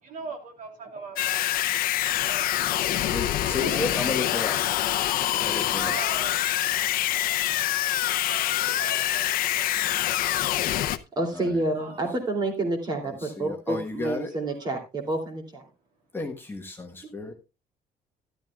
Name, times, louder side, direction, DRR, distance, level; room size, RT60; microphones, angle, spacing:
voice 1, 0.0-3.1 3.4-4.5 5.0-7.3 7.8-7.9 8.2-10.3 11.8-12.1 14.0-14.2 14.6-14.8, right 4 dB, 55° right, 2.9 m, -42 dB
sound 1, 1.2-11.0, left 13 dB, 60° left, 0.7 m, -25 dB
voice 2, 3.1-4.9 5.2-5.9 11.3-11.6 13.0-14.3 16.1-17.3, left 3 dB, 15° left, 1.2 m, -33 dB
voice 3, 11.2-15.6, right 2 dB, 25° right, 2.8 m, -29 dB
13.0 x 12.0 x 2.3 m
cardioid pair, 170°, 16 cm